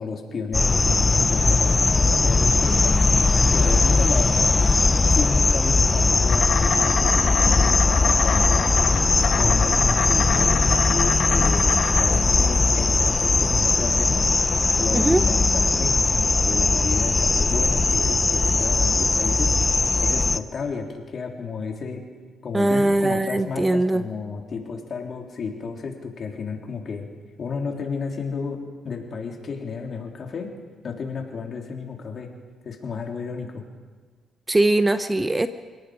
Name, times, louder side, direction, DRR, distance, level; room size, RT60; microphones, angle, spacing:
voice 1, 0.0-4.6 5.1-8.7 9.3-14.3 14.8-19.5 20.0-22.0 22.4-27.1 27.4-28.6 28.8-30.5 30.8-32.3 32.6-33.6, left 5 dB, 50° left, 1 dB, 3.6 m, -32 dB
sound 1, 0.5-20.4, left 3 dB, 25° left, 0.7 m, -19 dB
Insect, 6.3-16.3, left 7 dB, 70° left, 1.8 m, -29 dB
voice 2, 14.9-15.2 22.5-24.0 34.5-35.5, right 2 dB, 15° right, 11 dB, 0.8 m, -21 dB
28.0 x 18.0 x 5.1 m, 1.5 s
cardioid pair, 90°, 0 cm